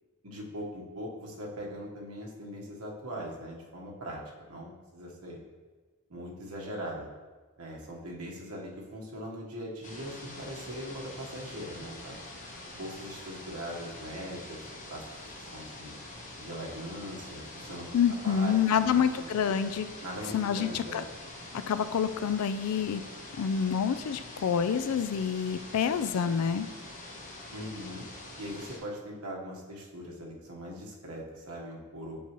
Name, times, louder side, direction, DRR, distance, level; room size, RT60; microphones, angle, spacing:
voice 1, 0.2-5.4 6.1-7.1 7.6-12.2 12.7-14.6 14.9-15.9 16.4-17.9 18.2-19.3 20.0-21.0 27.5-28.0 28.4-32.2, equal, 75° right, -2 dB, 1.3 m, -41 dB
sound 1, 9.8-28.8, left 1 dB, 35° left, 1.0 m, -45 dB
voice 2, 17.9-19.9 20.3-21.0 21.7-23.0 23.4-26.7, left 7 dB, 75° left, 12 dB, 0.4 m, -27 dB
7.1 x 5.4 x 3.0 m, 1.3 s
head